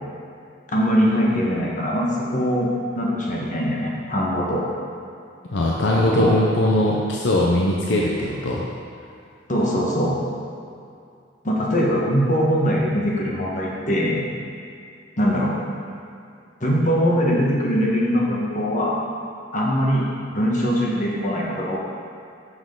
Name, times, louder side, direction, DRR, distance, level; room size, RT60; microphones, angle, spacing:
voice 1, 0.7-4.6 6.0-6.3 9.5-10.1 11.4-14.2 15.2-15.5 16.6-19.0 19.5-21.8, equal, 45° left, -3 dB, 1.3 m, -22 dB
voice 2, 5.5-8.6, left 1 dB, 70° left, -3 dB, 0.7 m, -20 dB
7.3 x 6.3 x 3.8 m, 2.5 s
head